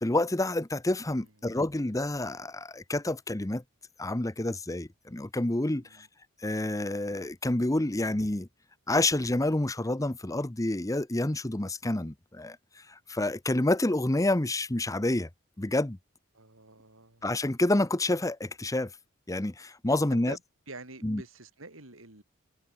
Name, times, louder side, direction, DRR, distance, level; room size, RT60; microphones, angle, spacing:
voice 1, 0.0-3.6 4.0-6.1 6.4-8.5 8.9-15.3 15.6-16.0 17.2-18.9 19.3-20.4 21.0-21.2, left 1 dB, 15° left, 0.9 m, -28 dB
voice 2, 5.7-6.1 16.3-17.3 20.1-20.4 20.7-22.2, right 2 dB, 80° right, 4.9 m, -47 dB
head